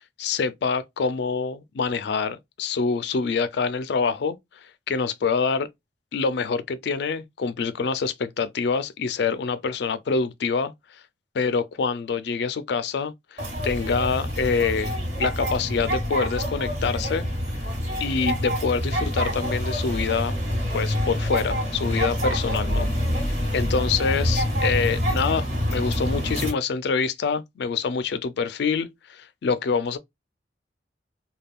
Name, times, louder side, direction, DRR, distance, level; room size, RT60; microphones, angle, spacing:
voice 1, 0.2-5.7 6.1-11.0 11.3-17.3 17.6-17.7 18.0-20.4 20.7-22.9 23.3-30.0, left 5 dB, 65° left, 0.4 m, -26 dB
sound 1, 13.4-26.5, equal, 45° right, 1.5 m, -26 dB
3.4 x 2.2 x 2.3 m
head